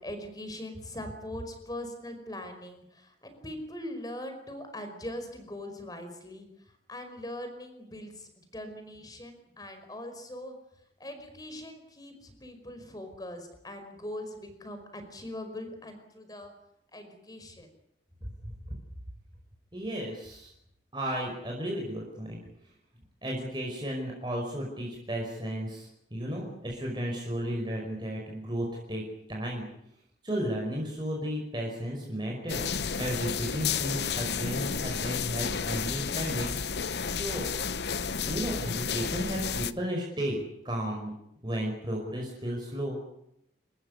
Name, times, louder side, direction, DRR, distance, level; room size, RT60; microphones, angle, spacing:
voice 1, 0.0-10.6 11.0-16.5 16.9-17.7, left 1 dB, 20° left, 7 dB, 5.1 m, -41 dB
voice 2, 18.2-18.5 19.7-20.5 20.9-22.4 23.2-29.0 29.3-29.6 30.2-32.6 33.0-36.5 37.1-37.5 38.2-41.1 41.4-43.0, equal, 25° right, -1 dB, 5.3 m, -33 dB
sound 1, 32.5-39.7, left 6 dB, 70° left, 0.9 m, -32 dB
28.5 x 15.0 x 9.7 m, 0.79 s
head